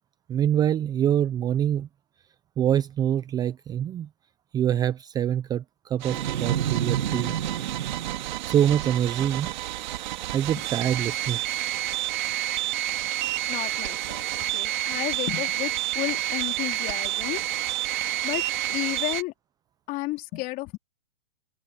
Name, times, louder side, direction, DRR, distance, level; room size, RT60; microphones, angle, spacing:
voice 1, 0.3-1.9 2.6-4.1 4.5-7.3 8.4-9.5 10.3-11.6, right 10 dB, 10° right, 0.7 m, -25 dB
sound 1, 6.0-19.2, right 14 dB, 45° right, 2.6 m, -29 dB
sound 2, 6.1-9.4, right 9 dB, 65° right, 1.8 m, -30 dB
voice 2, 13.5-17.4 18.2-18.4 18.7-19.3 19.9-20.8, left 20 dB, 25° left, 4.0 m, -32 dB
open air
hypercardioid pair, 140°, 32 cm